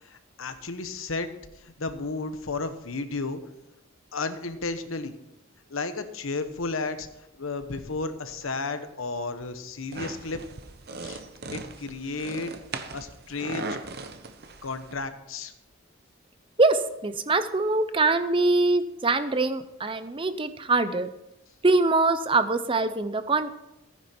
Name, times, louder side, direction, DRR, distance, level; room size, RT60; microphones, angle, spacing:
voice 1, 0.0-1.3 1.5-3.4 4.1-5.1 5.7-7.1 7.4-10.4 11.0-11.2 11.5-12.5 12.9-13.7 14.6-15.5, left 3 dB, 75° left, 9 dB, 1.1 m, -33 dB
sound 1, 9.9-14.9, right 3 dB, 50° right, 0.9 m, -38 dB
voice 2, 16.6-21.1 21.6-23.5, right 3 dB, 25° right, 11 dB, 0.6 m, -23 dB
15.0 x 9.8 x 4.4 m, 0.88 s
head